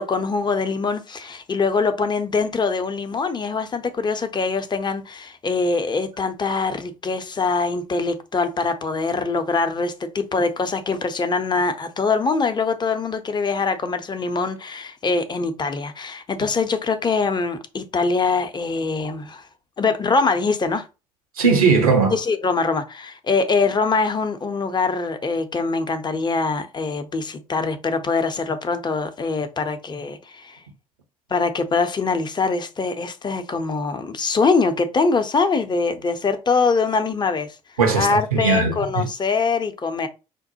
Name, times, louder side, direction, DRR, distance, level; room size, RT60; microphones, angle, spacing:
voice 1, 0.0-19.5 19.8-20.9 22.1-30.6 31.3-37.5 37.9-40.1, left 4 dB, 25° left, 0.7 m, -23 dB
voice 2, 21.4-22.2 37.8-39.0, right 4 dB, 80° right, 0.8 m, -18 dB
5.1 x 2.1 x 2.8 m
figure-of-eight pair, 55°, 18 cm